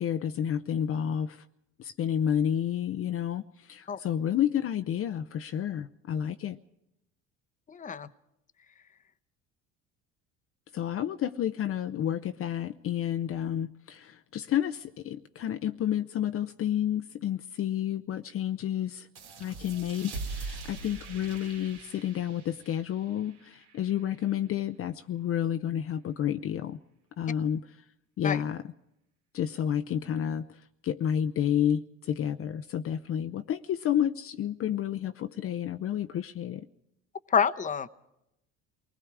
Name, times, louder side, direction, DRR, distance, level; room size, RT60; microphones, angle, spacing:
voice 1, 0.0-1.4 1.8-6.6 10.7-19.1 19.4-26.8 27.2-27.8 28.2-28.7 29.3-36.7, left 10 dB, 45° left, 0.7 m, -30 dB
voice 2, 7.7-8.1 28.2-28.4 37.3-37.9, left 7 dB, 25° left, 0.9 m, -27 dB
sound 1, 19.1-24.4, right 4 dB, 75° right, 3.1 m, -43 dB
28.0 x 20.0 x 4.8 m
cardioid pair, 105°, 31 cm